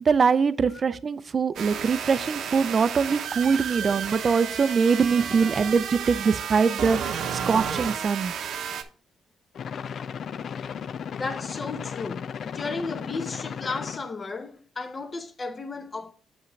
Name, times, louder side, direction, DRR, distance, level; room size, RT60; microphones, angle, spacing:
voice 1, 0.0-8.3, right 5 dB, 40° right, 0.5 m, -23 dB
sound 1, 1.6-8.8, right 7 dB, 70° right, 0.8 m, -32 dB
sound 2, 9.5-14.1, left 7 dB, 60° left, 0.3 m, -35 dB
voice 2, 11.2-16.1, left 3 dB, 30° left, 1.0 m, -34 dB
7.4 x 5.8 x 3.2 m
cardioid pair, 90°, 0 cm